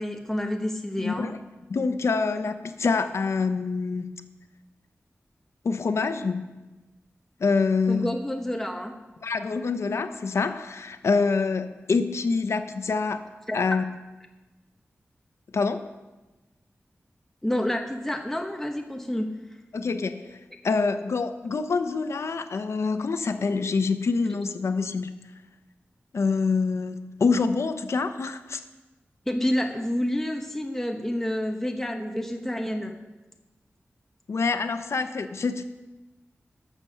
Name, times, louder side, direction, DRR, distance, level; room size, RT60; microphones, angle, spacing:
voice 1, 0.0-1.3 7.9-8.9 13.5-13.6 17.4-19.3 29.3-32.9, left 1 dB, 5° left, 3 dB, 0.9 m, -28 dB
voice 2, 1.0-1.4 1.7-4.1 5.6-6.6 7.4-8.1 9.2-13.2 13.5-13.8 15.5-15.8 19.7-20.4 20.6-25.1 26.1-28.6 34.3-35.6, left 4 dB, 80° left, 9 dB, 0.7 m, -26 dB
13.5 x 6.9 x 5.6 m, 1.1 s
wide cardioid pair, 100°, 5 cm